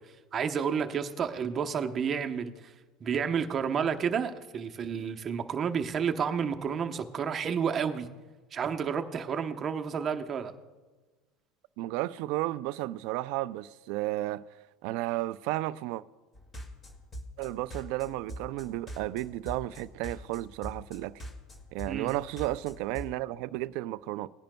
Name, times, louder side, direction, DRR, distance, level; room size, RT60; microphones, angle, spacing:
voice 1, 0.3-2.7 3.0-8.1 8.5-10.5 21.8-22.1, right 7 dB, 35° right, 0.8 m, -30 dB
voice 2, 11.8-14.4 14.8-16.0 17.4-21.2 21.7-24.3, right 17 dB, 70° right, 0.3 m, -33 dB
sound 1, 16.3-23.1, equal, 25° left, 2.0 m, -43 dB
18.5 x 10.5 x 2.2 m
supercardioid pair, 120°, 0 cm